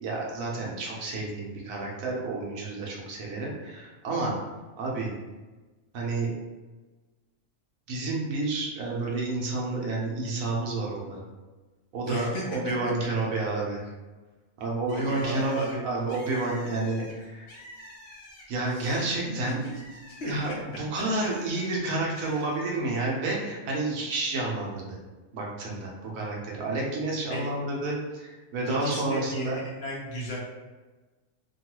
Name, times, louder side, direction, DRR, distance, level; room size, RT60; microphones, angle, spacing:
voice 1, 0.0-4.4 4.8-5.1 5.9-6.3 7.9-11.2 11.9-13.8 14.6-17.5 18.5-19.6 20.3-24.8 25.3-29.6, right 2 dB, 80° right, -2 dB, 1.2 m, -30 dB
voice 2, 12.0-12.9 14.9-15.8 18.7-19.0 20.2-20.8 27.3-27.5 28.7-30.4, equal, 60° left, -4 dB, 0.8 m, -35 dB
Bird, 14.9-18.7 19.1-21.7 22.2-22.8, left 1 dB, 90° left, 1.1 m, -48 dB
3.1 x 2.3 x 2.9 m, 1.2 s
omnidirectional pair, 1.4 m